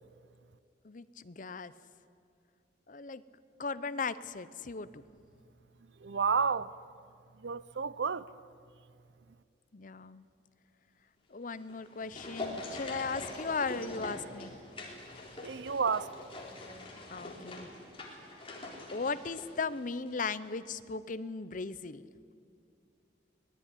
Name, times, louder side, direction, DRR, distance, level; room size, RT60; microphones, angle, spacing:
voice 1, 0.8-1.7 2.9-3.2 3.6-5.0 9.7-10.2 11.3-14.5 17.1-17.7 18.9-22.0, left 4 dB, 45° left, 0.7 m, -37 dB
voice 2, 6.0-6.7 7.4-8.3 15.4-16.1, right 5 dB, 75° right, 0.6 m, -31 dB
sound 1, 11.6-20.2 20.4-20.5, left 2 dB, 30° left, 4.1 m, -44 dB
24.0 x 19.0 x 9.9 m
head